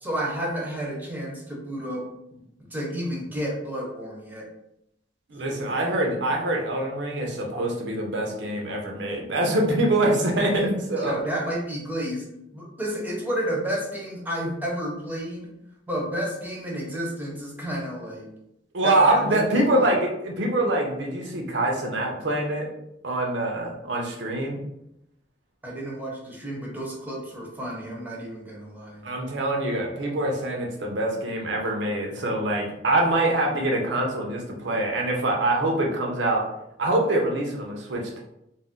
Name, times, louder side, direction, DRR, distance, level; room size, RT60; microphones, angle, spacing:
voice 1, 0.0-2.1 2.4-4.5 5.4-5.6 10.5-12.3 12.5-15.5 15.9-18.3 18.8-19.9 25.6-29.0, equal, 10° right, -2 dB, 0.7 m, -31 dB
voice 2, 5.3-11.2 18.7-22.7 23.0-24.6 29.0-36.4 36.8-38.2, right 1 dB, 75° right, 0 dB, 0.7 m, -24 dB
2.6 x 2.1 x 3.5 m, 0.82 s
head